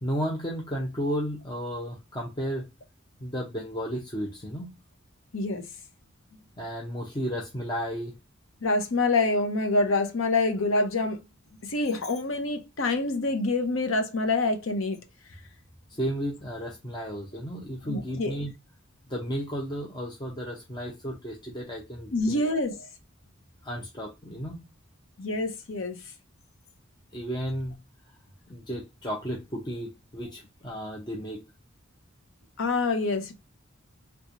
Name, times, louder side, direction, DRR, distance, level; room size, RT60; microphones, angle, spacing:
voice 1, 0.0-2.7 3.2-4.7 6.6-8.1 15.9-18.5 19.1-22.5 23.6-24.6 27.1-27.7 28.5-31.4, equal, 20° left, 0.6 m, -33 dB
voice 2, 5.3-5.6 8.6-11.2 11.6-15.0 17.8-18.4 22.1-22.8 25.2-26.0 32.6-33.3, left 2 dB, 70° left, 0.8 m, -26 dB
3.4 x 3.0 x 2.5 m
head